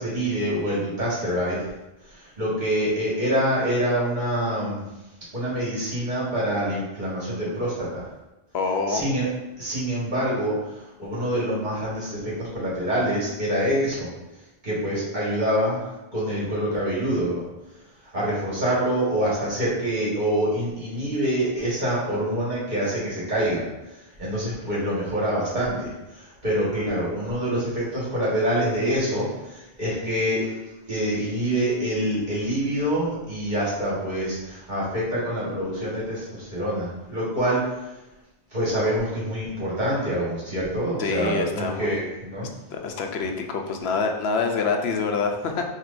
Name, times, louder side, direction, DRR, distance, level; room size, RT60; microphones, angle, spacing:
voice 1, 0.0-1.7 2.0-4.8 5.3-8.0 8.9-9.3 9.6-14.1 14.6-17.4 18.1-23.6 24.2-30.6 30.9-37.7 38.5-42.5, equal, 50° right, -8 dB, 1.6 m, -26 dB
voice 2, 8.5-9.1 41.0-42.1 42.4-45.6, left 4 dB, 85° left, 3 dB, 0.9 m, -26 dB
5.9 x 2.9 x 2.5 m, 0.99 s
omnidirectional pair, 1.0 m